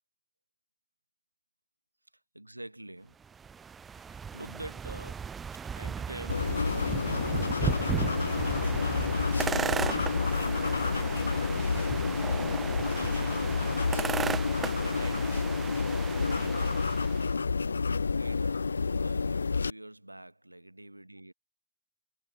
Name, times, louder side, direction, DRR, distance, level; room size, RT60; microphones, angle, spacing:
voice 1, 2.3-3.2 4.0-7.3 8.2-9.1 9.5-13.5 14.7-15.5 15.8-17.0 18.1-21.3, right 1 dB, 85° right, 1.1 m, -47 dB
sound 1, 3.2-17.3, right 6 dB, 20° right, 0.3 m, -36 dB
sound 2, 6.3-19.7, left 4 dB, 75° left, 0.4 m, -29 dB
sound 3, 7.7-16.2, equal, ahead, 1.9 m, -58 dB
figure-of-eight pair, 90°, 0 cm